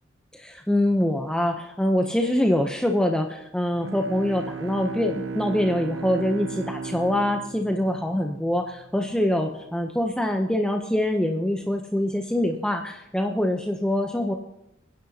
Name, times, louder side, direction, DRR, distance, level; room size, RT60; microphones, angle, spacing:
voice 1, 0.3-14.4, left 1 dB, 5° left, 3 dB, 0.6 m, -24 dB
Bowed string instrument, 3.7-8.8, right 5 dB, 75° right, 0.9 m, -35 dB
29.5 x 10.5 x 2.8 m, 0.87 s
head